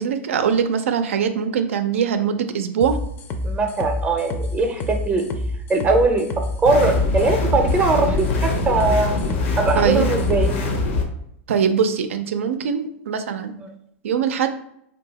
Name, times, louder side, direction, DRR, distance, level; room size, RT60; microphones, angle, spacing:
voice 1, 0.0-3.0 9.8-10.1 11.5-13.5 14.0-14.5, right 7 dB, 90° right, 8 dB, 0.4 m, -22 dB
sound 1, 2.8-10.6, left 1 dB, 30° left, 0.4 m, -28 dB
voice 2, 3.4-5.3 5.7-6.3 6.6-9.2 9.6-10.5 13.6-13.7, right 3 dB, 20° right, 3 dB, 0.5 m, -20 dB
sound 2, 6.7-11.0, left 3 dB, 75° left, 0.7 m, -23 dB
2.7 x 2.3 x 3.9 m, 0.74 s
hypercardioid pair, 120°, 7 cm